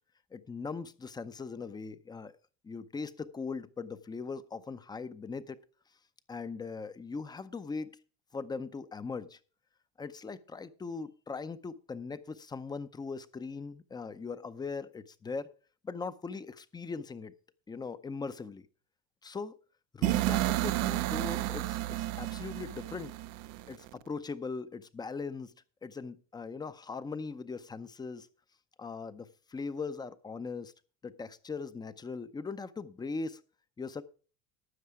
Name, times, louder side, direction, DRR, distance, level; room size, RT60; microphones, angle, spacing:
voice 1, 0.3-2.4 2.6-5.6 6.3-8.0 8.3-9.4 10.0-15.5 15.8-17.3 17.7-18.7 19.2-19.5 19.9-23.1 23.7-25.5 25.8-28.3 28.8-30.7 31.0-33.4 33.8-34.0, left 4 dB, 10° left, 14 dB, 0.6 m, -40 dB
sound 1, 20.0-23.9, right 17 dB, 50° right, 0.5 m, -31 dB
12.5 x 8.4 x 4.8 m, 0.37 s
cardioid pair, 145°, 34 cm